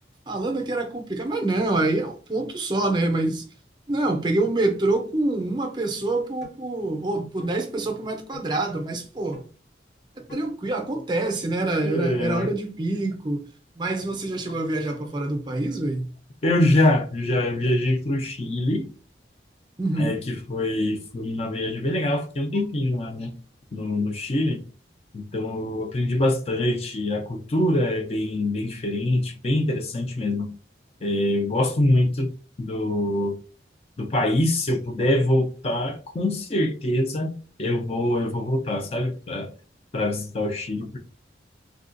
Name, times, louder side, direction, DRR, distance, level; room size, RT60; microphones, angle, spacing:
voice 1, 0.3-3.4 3.9-9.4 10.2-13.4 13.8-16.1 19.8-20.2, right 2 dB, 25° right, 0.5 m, -26 dB
sound 1, 6.4-6.6 7.4-7.5 8.3-8.5 9.3-9.5 10.3-10.5, left 3 dB, 60° left, 1.5 m, -44 dB
voice 2, 11.8-12.5 16.4-18.9 20.0-23.3 23.7-24.6 25.1-30.5 31.0-32.3 32.6-33.3 34.0-39.5 39.9-41.0, left 1 dB, 35° left, 0.4 m, -24 dB
3.4 x 2.3 x 2.5 m
head